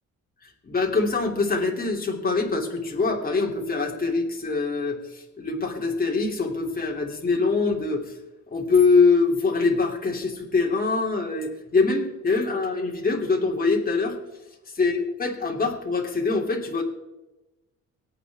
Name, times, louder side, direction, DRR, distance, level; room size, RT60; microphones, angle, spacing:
voice 1, 0.4-8.1 8.5-14.2 14.7-16.8, left 4 dB, 30° left, 0 dB, 2.9 m, -24 dB
24.0 x 8.7 x 3.5 m, 1.0 s
cardioid pair, 90°, 30 cm